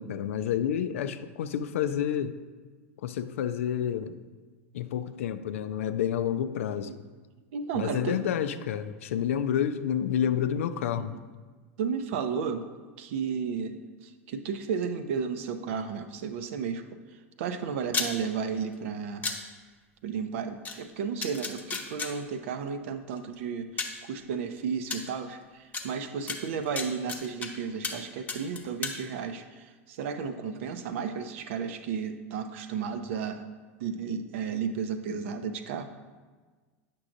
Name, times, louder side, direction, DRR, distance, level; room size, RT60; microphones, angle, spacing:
voice 1, 0.0-2.4 3.0-4.2 4.7-7.0 7.7-11.1, left 9 dB, 75° left, 11 dB, 0.4 m, -29 dB
voice 2, 7.5-8.2 11.0-11.2 11.8-12.7 13.0-16.8 17.4-19.4 20.0-33.4 33.8-35.9, right 6 dB, 65° right, 9 dB, 0.5 m, -33 dB
sound 1, 17.9-18.1 19.2-19.4 20.6-20.7 21.2-22.1 23.2-23.3 23.8-24.0 24.9-25.0 25.7-25.8 26.3-27.5 27.8-28.0 28.3-29.0, left 4 dB, 20° left, 0.8 m, -32 dB
8.4 x 6.1 x 2.6 m, 1.4 s
hypercardioid pair, 95°, 7 cm